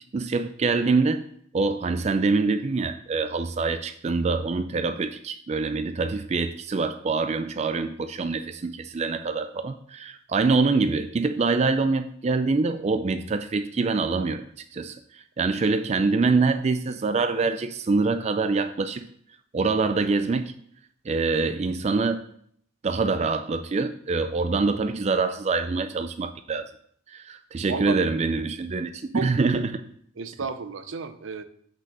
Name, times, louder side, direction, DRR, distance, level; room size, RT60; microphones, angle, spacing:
voice 1, 0.1-1.2 1.5-14.5 14.7-19.1 19.5-20.5 21.1-22.2 22.8-26.7 27.1-29.8, right 4 dB, 35° right, 9 dB, 0.4 m, -25 dB
voice 2, 30.2-31.4, right 4 dB, 80° right, 11 dB, 0.6 m, -32 dB
6.1 x 5.3 x 6.5 m, 0.64 s
head